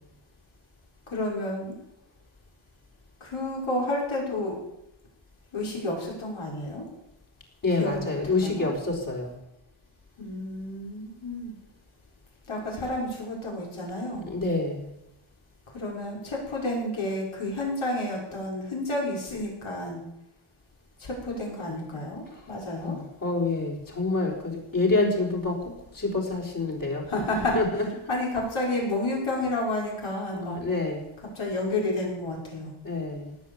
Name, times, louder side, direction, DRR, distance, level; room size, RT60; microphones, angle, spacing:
voice 1, 1.1-1.8 3.2-4.6 5.5-6.8 7.8-8.7 10.2-11.6 12.5-14.3 15.7-20.0 21.0-23.0 27.0-27.6 28.1-30.6 31.3-32.7, left 1 dB, 75° left, -2 dB, 5.9 m, -30 dB
voice 2, 7.6-9.3 14.3-14.9 22.8-27.0 27.5-27.9 30.3-31.1 32.8-33.4, left 3 dB, 40° left, -2 dB, 4.3 m, -27 dB
18.0 x 8.4 x 8.2 m, 0.87 s
wide cardioid pair, 165°, 50 cm